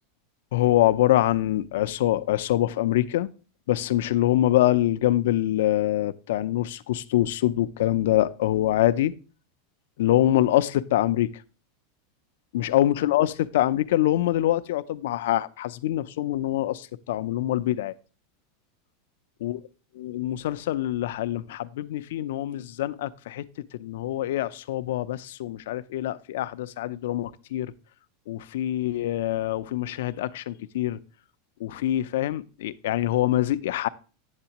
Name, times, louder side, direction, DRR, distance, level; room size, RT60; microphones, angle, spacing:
voice 1, 0.5-3.3 3.7-9.1 10.0-11.3 12.5-17.9 19.4-19.6 20.0-23.5 23.8-27.7 28.3-31.0 31.6-33.9, left 13 dB, 75° left, 0.4 m, -24 dB
8.0 x 7.7 x 2.9 m
supercardioid pair, 155°, 0 cm